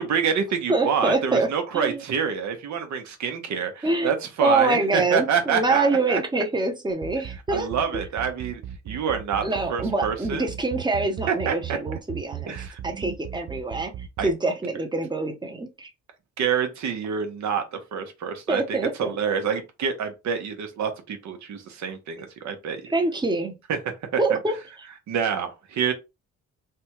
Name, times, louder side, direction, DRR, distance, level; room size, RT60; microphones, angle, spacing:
voice 1, 0.0-6.2 7.5-9.4 9.7-10.5 11.3-11.8 12.5-13.2 14.2-14.3 16.4-22.9 23.7-23.8 25.1-25.9, right 7 dB, 70° right, 1.0 m, -27 dB
voice 2, 0.7-1.5 1.7-2.0 3.8-4.1 4.4-7.7 9.4-12.6 12.8-13.9 14.2-15.9 18.5-19.1 22.9-23.5 24.2-24.5, right 2 dB, 15° right, 0.8 m, -25 dB
sound 1, 6.9-14.3, right 11 dB, 50° right, 0.5 m, -36 dB
3.4 x 2.2 x 3.0 m
cardioid pair, 90°, 30 cm